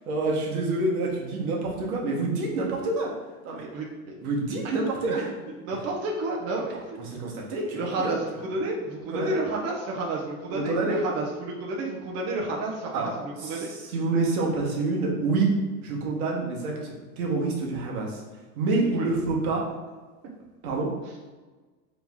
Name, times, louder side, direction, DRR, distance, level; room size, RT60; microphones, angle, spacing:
voice 1, 0.1-3.1 3.4-3.6 4.2-5.3 6.6-8.1 9.1-9.4 10.5-11.0 12.9-13.1 13.4-15.5 15.8-18.2 18.6-19.6 20.6-20.9, right 3 dB, 70° right, -1 dB, 1.3 m, -27 dB
voice 2, 3.7-4.1 5.1-5.2 5.6-6.6 7.7-13.7 18.9-19.2, right 2 dB, 35° right, -2 dB, 0.8 m, -30 dB
3.8 x 3.1 x 3.5 m, 1.3 s
hypercardioid pair, 115°, 45 cm